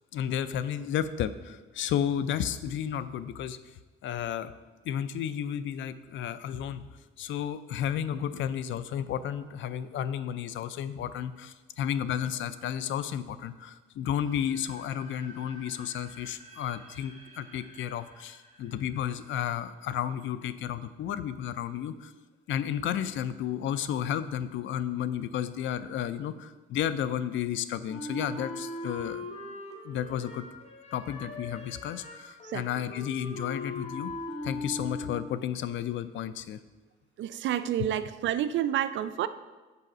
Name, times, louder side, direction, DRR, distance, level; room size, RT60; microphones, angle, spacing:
voice 1, 0.1-3.6 4.0-4.5 4.8-6.9 7.2-22.1 22.5-29.6 29.8-30.4 30.9-34.1 34.4-36.6, left 9 dB, 70° left, 14 dB, 0.5 m, -32 dB
sound 1, 14.1-21.0, right 1 dB, 35° right, 2.0 m, -53 dB
Wind instrument woodwind instrument, 27.9-35.4, left 2 dB, 30° left, 1.4 m, -40 dB
voice 2, 37.2-39.3, right 11 dB, 70° right, 13 dB, 0.5 m, -29 dB
6.8 x 4.9 x 6.1 m, 1.2 s
cardioid pair, 90°, 20 cm